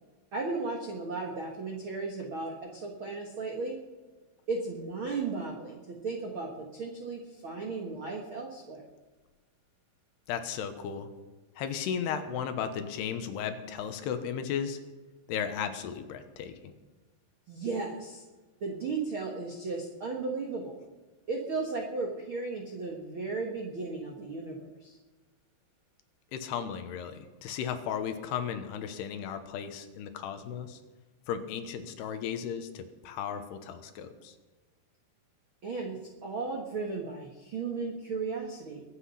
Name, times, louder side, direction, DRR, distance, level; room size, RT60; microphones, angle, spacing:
voice 1, 0.3-3.8 4.5-8.8 17.5-18.2 18.6-20.8 21.3-25.0 35.6-38.8, right 3 dB, 70° right, 1 dB, 1.2 m, -35 dB
voice 2, 10.3-11.1 11.6-14.8 15.3-16.5 26.3-30.8 31.3-34.3, left 8 dB, 80° left, 8 dB, 3.1 m, -35 dB
22.5 x 8.5 x 5.7 m, 1.2 s
omnidirectional pair, 4.9 m